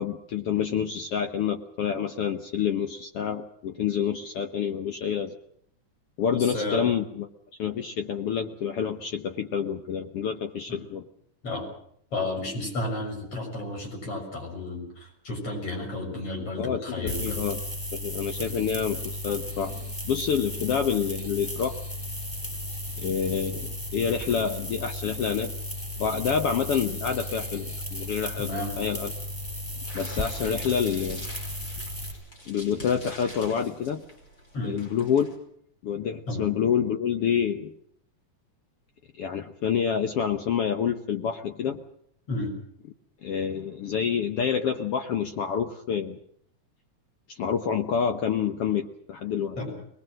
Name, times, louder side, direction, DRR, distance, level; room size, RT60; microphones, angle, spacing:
voice 1, 0.0-5.3 6.2-7.3 7.6-11.0 16.6-17.6 17.9-21.7 23.0-25.5 26.0-29.1 29.9-31.2 32.5-34.0 34.6-35.3 35.8-37.7 39.2-41.8 43.2-46.2 47.3-49.6, left 7 dB, 65° left, 6 dB, 1.5 m, -28 dB
voice 2, 6.3-6.9 10.7-10.8 11.4-11.7 12.1-17.4 18.5-18.6 28.4-28.8 34.5-34.8 36.3-36.5 42.3-42.5 49.6-49.7, left 2 dB, 45° left, 1 dB, 7.4 m, -32 dB
sound 1, 17.1-32.1, left 1 dB, 5° left, 5.4 m, -35 dB
sound 2, 29.9-35.3, equal, 25° left, 5.8 m, -46 dB
23.0 x 20.5 x 7.6 m, 0.68 s
omnidirectional pair, 3.7 m